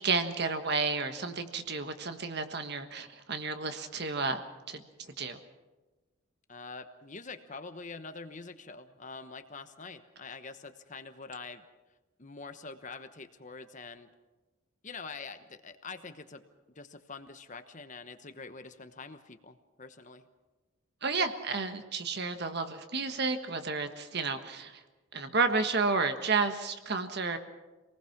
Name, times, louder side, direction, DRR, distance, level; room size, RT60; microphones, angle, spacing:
voice 1, 0.0-4.4 4.7-5.4 21.0-24.8 25.1-27.4, right 4 dB, 50° right, 7 dB, 1.5 m, -31 dB
voice 2, 6.5-11.6 12.2-14.1 14.8-16.4 16.7-20.3, left 4 dB, 35° left, 9 dB, 1.1 m, -45 dB
26.5 x 19.5 x 6.0 m, 1.2 s
head